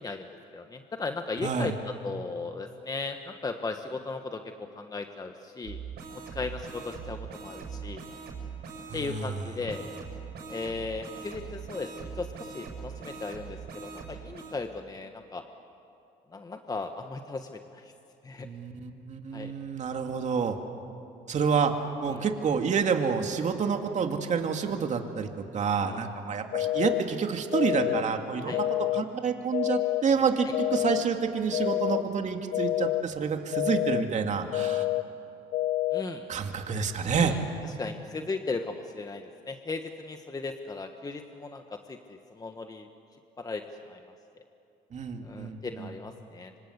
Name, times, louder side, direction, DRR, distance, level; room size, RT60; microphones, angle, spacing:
voice 1, 0.0-4.4 4.7-5.8 6.3-8.0 8.9-9.8 10.5-11.9 12.2-15.4 16.3-17.9 18.2-18.5 19.3-19.5 22.1-22.2 25.8-26.1 28.4-28.6 35.9-36.3 37.1-42.9 43.4-43.6 43.9-44.0 45.2-46.5, left 3 dB, 20° left, 6 dB, 1.3 m, -36 dB
voice 2, 1.4-1.7 8.9-9.4 18.4-20.5 21.3-21.7 22.0-28.7 28.9-34.9 36.3-37.4 44.9-45.9, right 6 dB, 45° right, 4 dB, 2.4 m, -28 dB
sound 1, 5.6-9.0 9.7-14.6, right 6 dB, 70° right, 6.8 m, -41 dB
sound 2, 26.5-27.0 27.5-28.0 28.5-29.0 29.5-30.0 30.5-31.0 31.5-32.0 32.5-33.0 33.5-34.0 34.5-35.0 35.5-36.0, left 16 dB, 85° left, 1.0 m, -27 dB
26.5 x 25.5 x 8.1 m, 2.6 s
cardioid pair, 110°, 17 cm